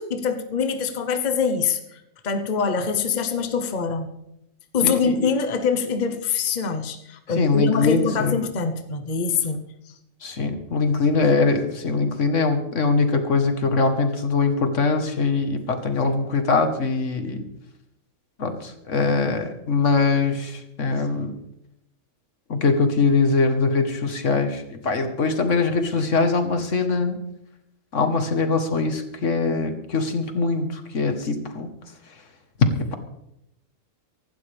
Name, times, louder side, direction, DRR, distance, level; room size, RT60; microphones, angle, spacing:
voice 1, 0.0-4.1 4.7-9.6, left 5 dB, 40° left, 7 dB, 1.1 m, -24 dB
voice 2, 4.8-5.3 7.3-8.4 10.2-17.5 18.4-21.3 22.5-27.2 27.9-31.7 32.8-32.9, left 4 dB, 70° left, 7 dB, 1.8 m, -22 dB
24.5 x 12.0 x 3.5 m, 0.81 s
omnidirectional pair, 1.3 m